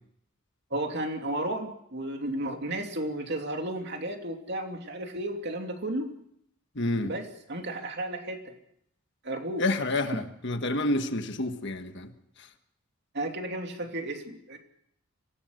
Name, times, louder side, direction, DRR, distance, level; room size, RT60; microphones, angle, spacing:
voice 1, 0.7-6.1 7.0-8.5 9.2-9.6 13.1-14.6, right 1 dB, 50° right, 2.9 m, -33 dB
voice 2, 6.8-7.1 9.6-12.1, left 2 dB, 55° left, 1.6 m, -29 dB
25.0 x 17.5 x 6.6 m
head